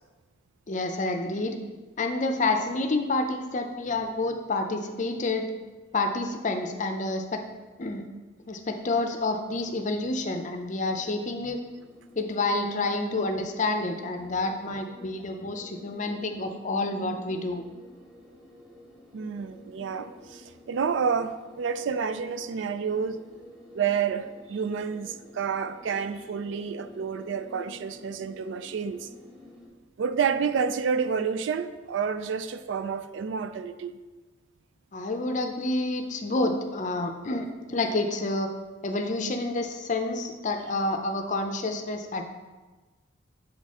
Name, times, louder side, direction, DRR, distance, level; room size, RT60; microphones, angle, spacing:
voice 1, 0.7-1.6 2.0-5.5 5.9-7.4 7.8-8.0 8.5-11.6 12.2-17.6 34.9-38.5 38.8-42.2, left 2 dB, 40° left, 5 dB, 0.5 m, -29 dB
sound 1, 10.8-29.7, left 1 dB, ahead, 1.5 m, -51 dB
voice 2, 19.1-23.2 23.7-29.1 30.0-33.9, right 6 dB, 70° right, 11 dB, 0.3 m, -29 dB
7.8 x 4.1 x 3.6 m, 1.2 s
head